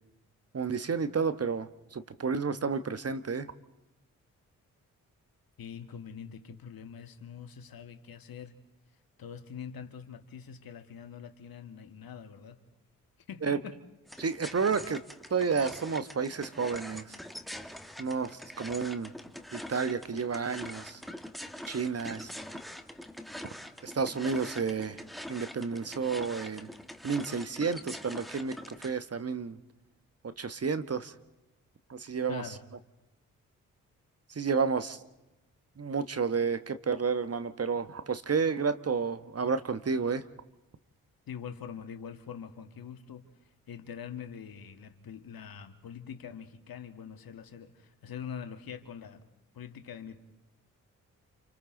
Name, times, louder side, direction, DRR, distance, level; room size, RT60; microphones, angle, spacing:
voice 1, 0.5-3.5 13.4-13.6 14.2-15.0 15.3-17.0 18.0-19.1 19.5-21.0 21.7-22.3 23.8-25.0 25.3-26.7 27.0-28.6 28.8-29.6 30.4-31.1 31.9-32.4 34.3-35.0 35.8-40.2, right 5 dB, 40° right, 11 dB, 1.3 m, -31 dB
voice 2, 5.6-8.6 9.2-12.6 13.3-13.8 32.3-32.6 41.3-43.3 43.7-49.2 49.5-50.2, left 7 dB, 60° left, 7 dB, 2.0 m, -44 dB
sound 1, 14.1-29.0, equal, ahead, 1.7 m, -44 dB
29.5 x 28.0 x 3.9 m, 0.95 s
hypercardioid pair, 40°, 39 cm